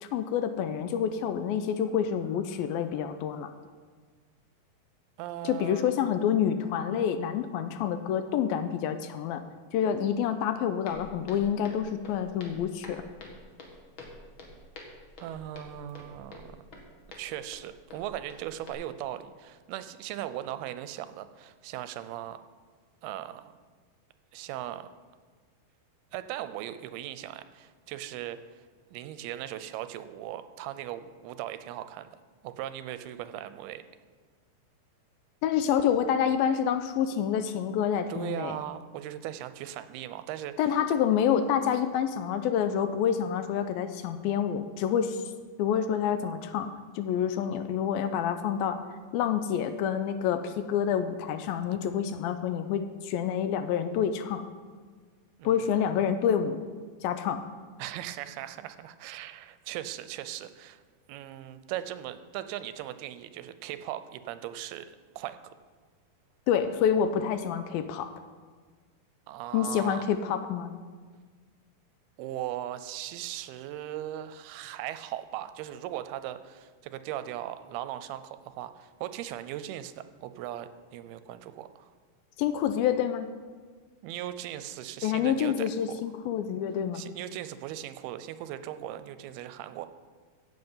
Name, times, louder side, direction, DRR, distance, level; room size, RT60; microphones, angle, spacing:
voice 1, 0.0-3.5 5.4-9.4 9.7-13.0 35.4-38.6 40.6-45.2 45.6-48.8 49.1-54.4 55.4-56.6 57.0-57.4 66.5-68.1 69.5-70.7 82.4-83.3 85.0-87.0, left 8 dB, 80° left, 9 dB, 2.3 m, -28 dB
voice 2, 5.2-6.0 15.2-16.6 17.2-22.4 23.0-23.5 24.3-24.9 26.1-28.6 28.9-32.1 32.4-33.8 38.1-40.8 55.4-55.9 57.8-60.8 61.1-65.4 69.3-70.1 72.2-81.9 84.0-86.0 86.9-89.9, right 12 dB, 85° right, 12 dB, 2.5 m, -38 dB
Walk footsteps, 10.9-18.7, left 2 dB, 45° left, 1.8 m, -48 dB
15.5 x 7.8 x 5.5 m, 1.5 s
omnidirectional pair, 4.4 m